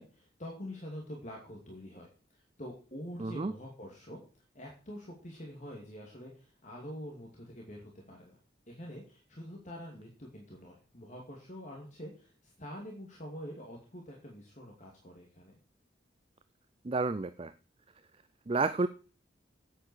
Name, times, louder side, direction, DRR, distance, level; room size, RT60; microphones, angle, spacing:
voice 1, 0.0-4.2 4.5-8.4 8.7-15.5, equal, 40° left, -1 dB, 2.5 m, -46 dB
voice 2, 3.2-3.5 16.8-17.5 18.5-18.9, right 3 dB, 30° right, 12 dB, 0.5 m, -30 dB
8.8 x 8.2 x 6.3 m, 0.38 s
head